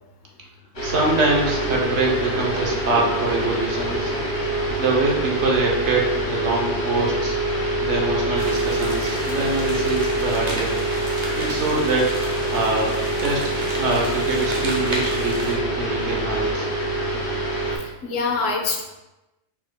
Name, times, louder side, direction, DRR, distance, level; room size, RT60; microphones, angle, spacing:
sound 1, 0.7-17.8, right 1 dB, 55° left, 1.4 m, -25 dB
voice 1, 0.8-4.1 4.8-7.4 7.8-10.7 11.4-16.7, right 2 dB, 75° right, -1 dB, 1.2 m, -24 dB
sound 2, 8.4-15.5, right 1 dB, 35° right, 0.9 m, -33 dB
voice 2, 17.8-18.8, left 4 dB, 90° left, 1 dB, 1.1 m, -25 dB
4.8 x 4.3 x 2.2 m, 1.0 s
omnidirectional pair, 1.3 m